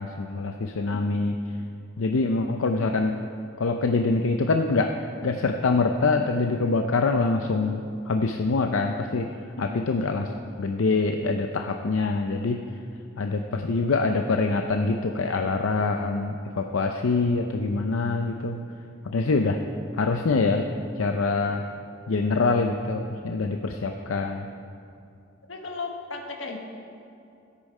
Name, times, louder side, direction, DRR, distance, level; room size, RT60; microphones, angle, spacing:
voice 1, 0.0-1.4 2.0-3.2 3.6-9.3 9.6-10.3 10.6-12.6 13.2-18.6 19.0-19.6 20.0-20.7 21.0-21.6 22.1-24.5, left 3 dB, 90° left, 4 dB, 0.6 m, -25 dB
voice 2, 25.5-26.6, left 3 dB, 70° left, 2 dB, 1.4 m, -36 dB
13.0 x 8.5 x 5.4 m, 2.6 s
head